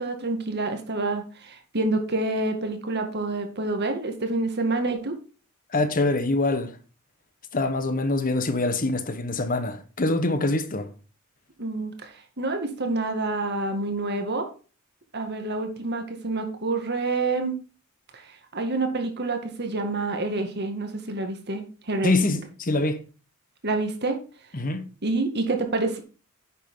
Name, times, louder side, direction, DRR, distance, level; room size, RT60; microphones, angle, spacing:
voice 1, 0.0-5.2 11.6-14.5 15.1-17.6 18.1-18.3 18.5-22.1 23.6-24.2 25.0-26.0, right 2 dB, 50° right, 2.1 m, -27 dB
voice 2, 5.7-6.8 7.5-10.9 22.0-23.0 24.5-24.9, left 2 dB, 40° left, 1.1 m, -24 dB
10.5 x 7.6 x 3.8 m
head